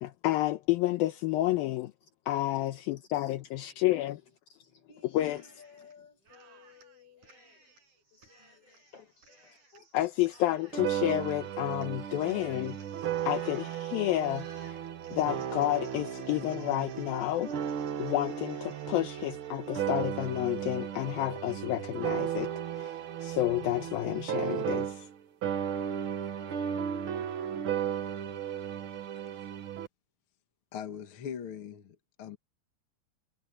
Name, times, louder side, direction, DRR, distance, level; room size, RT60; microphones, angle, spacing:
voice 1, 0.0-1.9 2.3-4.2 5.1-5.4 9.9-12.8 13.0-14.7 15.1-17.5 18.0-25.1, left 15 dB, 75° left, 2.5 m, -30 dB
voice 2, 2.0-2.3 2.7-10.0 12.0-12.6, left 5 dB, 40° left, 5.8 m, -59 dB
Cheering, 5.1-5.9 6.2-20.6, right 2 dB, 50° right, 8.5 m, -58 dB
sound 1, 10.7-25.2 25.4-29.9, right 9 dB, 90° right, 1.1 m, -35 dB
voice 3, 30.7-32.4, left 8 dB, 55° left, 1.6 m, -41 dB
omnidirectional pair, 4.5 m